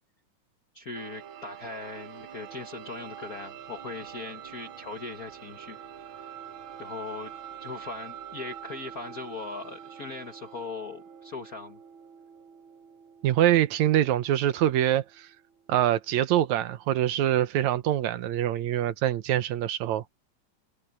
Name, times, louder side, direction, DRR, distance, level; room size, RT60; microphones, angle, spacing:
voice 1, 0.7-5.8 6.2-6.3 6.8-7.3 7.6-11.8, left 3 dB, 55° left, 1.0 m, -39 dB
sound 1, 0.9-16.6, right 9 dB, 55° right, 1.7 m, -46 dB
voice 2, 13.2-15.3 15.7-20.0, right 12 dB, 75° right, 2.1 m, -24 dB
omnidirectional pair, 3.5 m